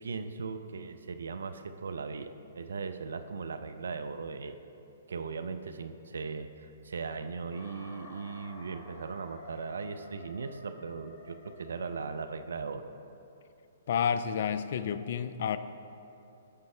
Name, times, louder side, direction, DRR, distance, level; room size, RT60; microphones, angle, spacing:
voice 1, 0.0-4.6 5.1-12.9, right 4 dB, 70° right, 9 dB, 0.4 m, -38 dB
sound 1, 7.5-12.5, left 1 dB, 40° left, 1.1 m, -51 dB
voice 2, 13.9-15.6, left 7 dB, 55° left, 12 dB, 0.3 m, -30 dB
15.5 x 5.2 x 2.3 m, 2.8 s
figure-of-eight pair, 120°, 0 cm